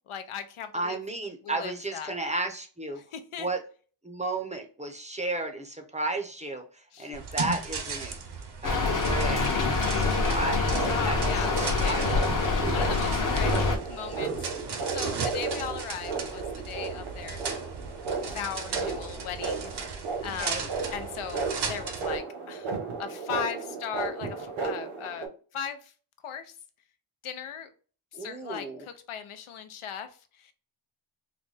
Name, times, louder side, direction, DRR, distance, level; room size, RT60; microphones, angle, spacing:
voice 1, 0.1-1.0 1.4-2.1 3.1-3.5 6.9-7.1 10.9-12.3 12.7-17.5 18.2-22.7 23.0-25.9 26.2-26.5 27.2-27.7 28.1-30.5, left 8 dB, 90° left, 9 dB, 0.7 m, -38 dB
voice 2, 0.7-3.0 3.4-3.6 4.0-8.2 8.6-9.6 9.9-11.5 11.8-12.2 20.2-20.7 28.1-28.8, right 2 dB, 15° right, 3 dB, 0.5 m, -33 dB
sound 1, 7.1-22.2, right 5 dB, 55° right, 0.7 m, -37 dB
Rain, 8.6-13.8, left 3 dB, 40° left, 0.8 m, -26 dB
sound 2, 10.0-25.3, right 4 dB, 75° right, 1.1 m, -34 dB
3.9 x 2.2 x 3.2 m, 0.39 s
wide cardioid pair, 135°, 48 cm